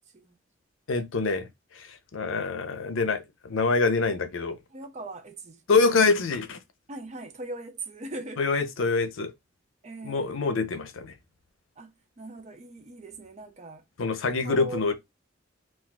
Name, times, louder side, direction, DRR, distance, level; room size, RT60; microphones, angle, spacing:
voice 1, 0.9-1.5 1.8-1.9 2.1-4.6 5.7-6.6 8.4-9.3 10.0-11.1 14.0-14.9, left 4 dB, 85° left, 0.6 m, -25 dB
voice 2, 4.7-5.6 6.9-8.4 9.8-10.5 11.8-13.8 14.4-14.8, right 2 dB, 35° right, 0.6 m, -40 dB
2.5 x 2.2 x 3.9 m
head